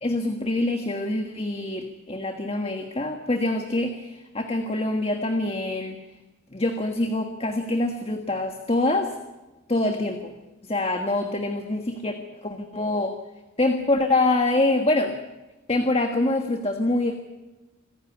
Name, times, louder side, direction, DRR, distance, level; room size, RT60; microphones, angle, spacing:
voice 1, 0.0-6.0 6.5-9.1 9.7-10.3 10.6-12.1 12.4-13.2 13.6-15.2 15.7-17.2, left 2 dB, 30° left, 5 dB, 1.5 m, -25 dB
26.5 x 15.5 x 9.8 m, 1.1 s
head